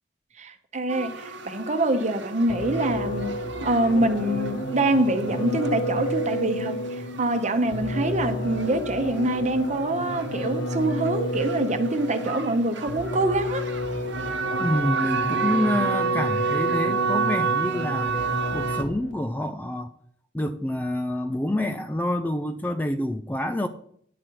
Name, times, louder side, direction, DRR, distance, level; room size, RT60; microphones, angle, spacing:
voice 1, 0.4-3.3 3.6-13.6, right 1 dB, 40° right, 0.9 m, -25 dB
sound 1, 0.9-18.8, right 6 dB, 65° right, 1.0 m, -32 dB
sound 2, 2.5-19.1, equal, 70° left, 1.4 m, -31 dB
voice 2, 14.6-19.9 20.3-23.7, left 1 dB, 10° left, 0.3 m, -27 dB
10.0 x 7.2 x 4.7 m
head